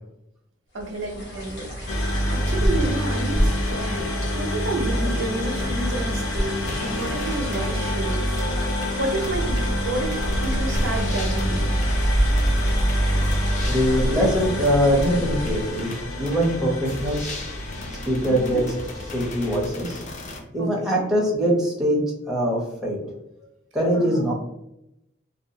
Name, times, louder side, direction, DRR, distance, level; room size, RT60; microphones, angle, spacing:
voice 1, 0.7-8.4 9.0-11.9 17.8-18.6 20.6-21.1 23.9-24.3, right 2 dB, 75° right, 2 dB, 0.6 m, -31 dB
sound 1, 0.8-16.2, equal, 55° left, 0.9 m, -30 dB
sound 2, 1.9-19.6, equal, 90° left, 0.5 m, -26 dB
sound 3, 6.7-20.4, left 2 dB, 35° left, 0.4 m, -37 dB
voice 2, 13.7-15.9 16.2-17.4 18.1-18.6 19.1-20.0 20.5-22.0 22.3-23.0 23.7-24.3, equal, 5° right, -5 dB, 0.6 m, -22 dB
2.7 x 2.2 x 2.7 m, 0.85 s
head